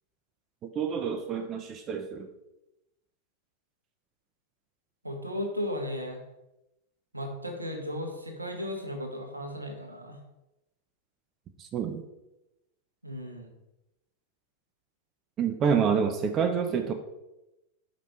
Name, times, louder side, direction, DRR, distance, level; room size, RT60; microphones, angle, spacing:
voice 1, 0.7-2.3 11.6-12.0 15.4-16.9, right 6 dB, 30° right, 6 dB, 0.6 m, -27 dB
voice 2, 5.0-6.2 7.1-10.2 13.0-13.5, left 1 dB, 85° right, 3 dB, 1.1 m, -35 dB
5.3 x 5.0 x 4.4 m, 0.93 s
figure-of-eight pair, 90°, 0 cm